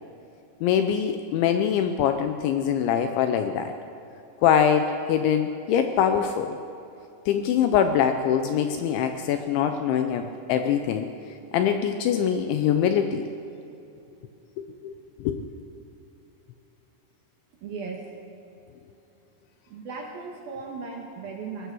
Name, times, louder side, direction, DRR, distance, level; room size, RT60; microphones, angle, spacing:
voice 1, 0.6-3.7 4.4-6.6 7.3-11.1 11.5-13.3 14.8-14.9 15.2-15.4, left 8 dB, 80° left, 7 dB, 2.8 m, -23 dB
voice 2, 17.6-18.0 19.7-21.7, right 4 dB, 60° right, 1 dB, 2.8 m, -36 dB
22.0 x 18.5 x 6.3 m, 2.8 s
omnidirectional pair, 6.0 m